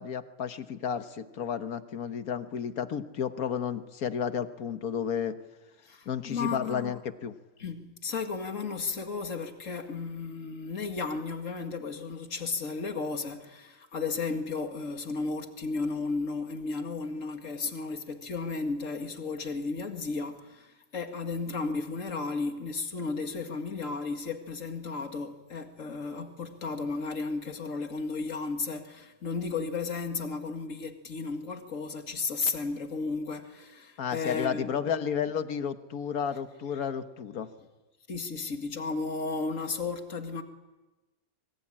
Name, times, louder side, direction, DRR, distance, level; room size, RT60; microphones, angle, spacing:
voice 1, 0.0-5.4 6.1-7.4 34.0-37.5, left 7 dB, 80° left, 1.7 m, -32 dB
voice 2, 5.9-7.0 7.6-34.9 38.1-40.4, left 4 dB, 60° left, 2.4 m, -34 dB
27.0 x 23.5 x 8.8 m
omnidirectional pair, 1.5 m